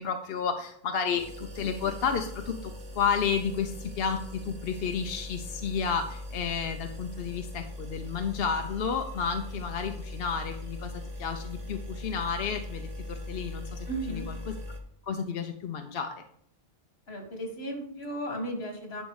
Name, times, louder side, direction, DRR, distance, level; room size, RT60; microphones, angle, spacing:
voice 1, 0.0-14.6 15.1-16.1, left 6 dB, 70° left, 6 dB, 0.9 m, -31 dB
sound 1, 1.2-14.8, left 1 dB, 40° right, 1.2 m, -40 dB
voice 2, 13.9-14.3 17.1-19.0, right 1 dB, 90° left, 3 dB, 2.0 m, -35 dB
10.0 x 5.3 x 4.7 m, 0.67 s
omnidirectional pair, 1.0 m